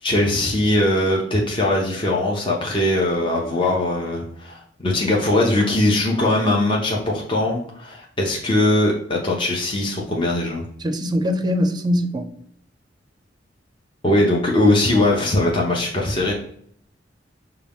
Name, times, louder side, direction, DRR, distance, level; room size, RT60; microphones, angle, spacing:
voice 1, 0.0-10.6 14.0-16.3, left 1 dB, 30° left, 0.7 m, -20 dB
voice 2, 10.8-12.3, equal, 25° right, 0.5 m, -22 dB
5.9 x 2.3 x 3.4 m
head